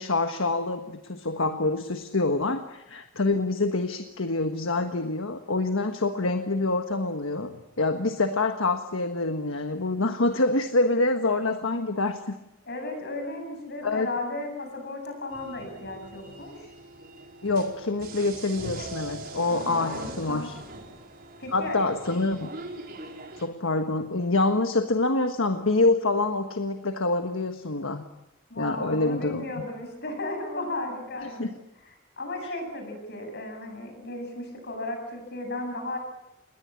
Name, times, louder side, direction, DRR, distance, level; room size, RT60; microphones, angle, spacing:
voice 1, 0.0-12.4 13.8-14.1 17.4-20.6 21.5-22.5 23.4-28.0 28.6-29.5 31.2-31.5 32.4-32.5, left 2 dB, 70° left, 7 dB, 1.4 m, -26 dB
voice 2, 12.6-16.7 19.5-20.5 21.4-21.9 28.5-31.5 31.8-36.0, left 2 dB, 55° left, 5 dB, 7.8 m, -35 dB
sound 1, 15.3-23.5, right 2 dB, 45° right, 4.7 m, -41 dB
28.0 x 21.0 x 8.6 m, 0.89 s
head